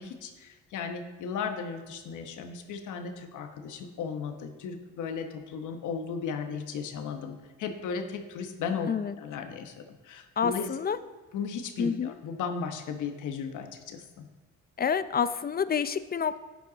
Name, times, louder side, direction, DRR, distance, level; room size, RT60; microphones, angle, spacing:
voice 1, 0.0-8.9 9.2-10.7 11.3-14.3, left 6 dB, 80° left, 6 dB, 1.1 m, -36 dB
voice 2, 10.4-11.0 11.8-12.1 14.8-16.4, left 7 dB, 30° left, 14 dB, 0.5 m, -28 dB
12.0 x 9.1 x 4.0 m, 1.3 s
cardioid pair, 90°, 30 cm